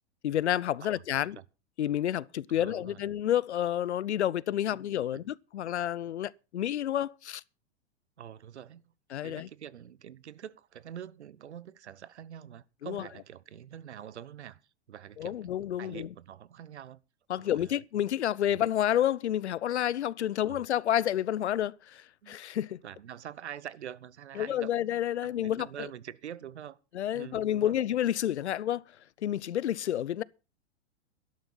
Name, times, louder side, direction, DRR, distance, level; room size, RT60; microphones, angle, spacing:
voice 1, 0.2-1.4 1.8-7.4 9.1-9.5 12.8-13.0 15.2-16.1 17.3-22.8 24.4-25.7 26.9-28.8 29.2-30.2, left 11 dB, 75° left, 0.7 m, -29 dB
voice 2, 2.5-3.1 4.7-4.8 5.1-5.2 8.2-8.9 9.2-14.6 14.9-15.5 15.8-17.0 17.4-17.8 18.5-18.6 20.4-20.6 22.2-22.3 22.8-24.9 25.2-26.8 27.1-27.8, right 9 dB, 75° right, 1.1 m, -45 dB
13.0 x 11.5 x 5.6 m
figure-of-eight pair, 100°, 34 cm